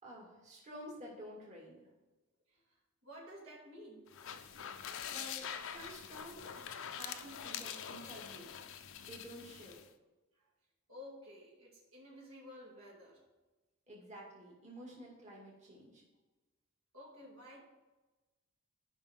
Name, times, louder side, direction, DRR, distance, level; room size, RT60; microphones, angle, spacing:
voice 1, 0.0-1.8 5.1-8.5 9.0-9.8 13.9-16.0, equal, 35° right, 2.2 m, -51 dB
voice 2, 2.5-4.3 10.3-10.4 10.9-13.3 15.0-15.1 16.9-17.6, left 1 dB, 70° right, 2.5 m, -53 dB
sound 1, 4.1-9.9, left 8 dB, 65° left, 0.6 m, -45 dB
13.0 x 5.5 x 3.7 m
head